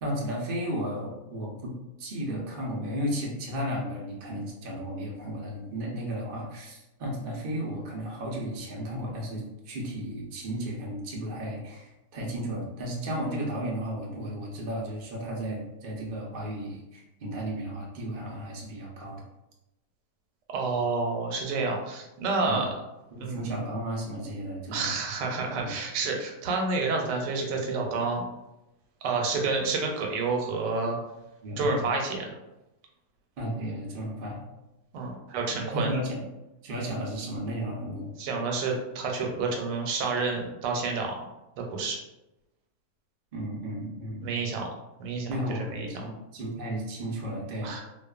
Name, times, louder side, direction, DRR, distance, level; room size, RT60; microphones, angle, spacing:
voice 1, 0.0-19.2 22.4-22.7 23.1-24.9 25.6-25.7 31.4-31.8 33.4-34.4 35.7-36.2 36.6-38.1 43.3-44.3 45.3-47.7, equal, 75° right, -2 dB, 0.4 m, -34 dB
voice 2, 20.5-22.7 23.2-23.6 24.7-28.2 29.0-31.0 31.6-32.2 34.9-35.9 38.2-41.2 41.6-42.0 44.2-44.7 45.0-45.9 47.6-47.8, right 3 dB, 90° right, 1 dB, 1.2 m, -29 dB
2.4 x 2.4 x 2.3 m, 0.96 s
omnidirectional pair, 1.8 m